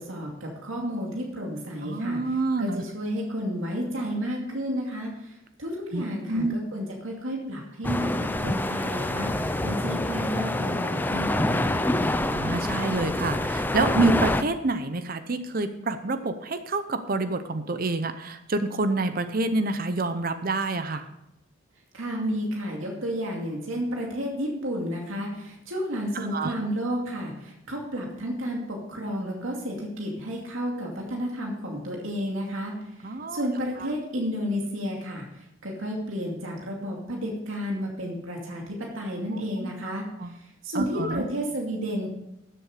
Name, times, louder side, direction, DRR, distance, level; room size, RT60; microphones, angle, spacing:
voice 1, 0.0-5.3 5.6-11.8 21.9-32.8 33.0-40.4 40.6-42.1, equal, 75° right, -1 dB, 2.4 m, -32 dB
voice 2, 1.8-2.8 5.9-6.5 12.2-21.1 26.1-26.5 33.0-33.5 33.8-33.9 39.3-39.7 40.2-40.3 40.7-41.2, right 2 dB, 45° right, 10 dB, 0.7 m, -27 dB
sound 1, 7.8-14.4, left 1 dB, 10° left, 0.4 m, -26 dB
13.5 x 7.7 x 4.9 m, 0.86 s
head